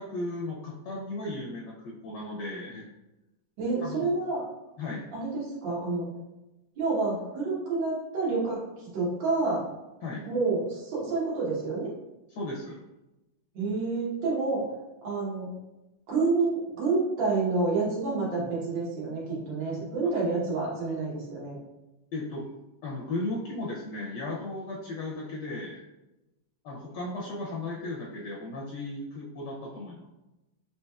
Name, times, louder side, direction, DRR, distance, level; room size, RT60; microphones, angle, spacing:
voice 1, 0.0-2.9 3.8-4.1 4.8-5.0 10.0-10.2 12.3-12.8 22.1-22.5 22.8-25.8 26.6-30.1, left 2 dB, 75° left, -3 dB, 1.1 m, -35 dB
voice 2, 3.6-4.4 5.1-6.1 6.8-9.6 10.2-11.9 13.6-14.6 15.0-15.5 16.1-21.6, right 3 dB, 75° right, -6 dB, 1.8 m, -28 dB
4.2 x 2.8 x 2.3 m, 0.99 s
omnidirectional pair, 2.1 m